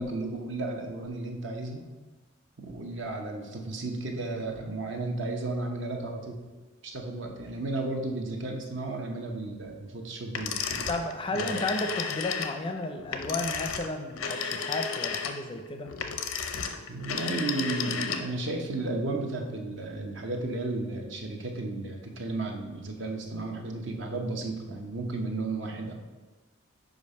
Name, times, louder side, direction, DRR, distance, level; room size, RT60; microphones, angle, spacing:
voice 1, 0.0-1.8 2.6-6.4 6.8-10.9 11.3-11.7 16.9-25.9, right 2 dB, 60° right, 2 dB, 0.9 m, -33 dB
sound 1, 10.3-18.5, left 6 dB, 90° left, 0.6 m, -33 dB
voice 2, 10.9-15.9, left 2 dB, 25° left, 5 dB, 0.4 m, -33 dB
5.2 x 4.9 x 5.3 m, 1.2 s
head